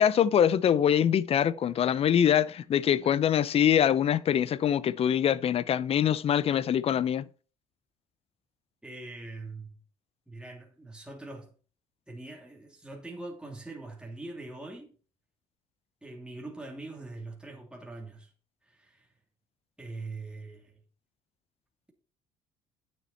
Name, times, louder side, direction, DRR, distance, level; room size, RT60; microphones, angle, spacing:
voice 1, 0.0-7.3, left 9 dB, 45° left, 0.7 m, -24 dB
voice 2, 8.8-9.8 10.3-11.5 12.1-14.9 16.0-18.3 18.7-19.1 19.8-20.7, right 2 dB, 5° right, 3.0 m, -42 dB
9.8 x 7.0 x 4.4 m
supercardioid pair, 75°, 13 cm